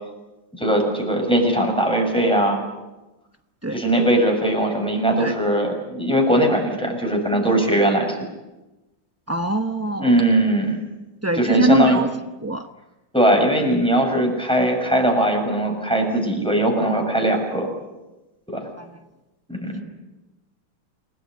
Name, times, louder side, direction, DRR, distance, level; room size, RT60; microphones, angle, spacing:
voice 1, 0.6-2.6 3.7-8.2 10.0-10.8 11.3-12.0 13.1-17.7 19.5-19.7, right 1 dB, 5° left, 2 dB, 6.8 m, -20 dB
voice 2, 9.3-10.2 11.2-12.1 12.4-12.7 18.8-18.9, right 2 dB, 15° right, 6 dB, 0.5 m, -22 dB
29.5 x 18.5 x 9.7 m, 1.0 s
omnidirectional pair, 2.0 m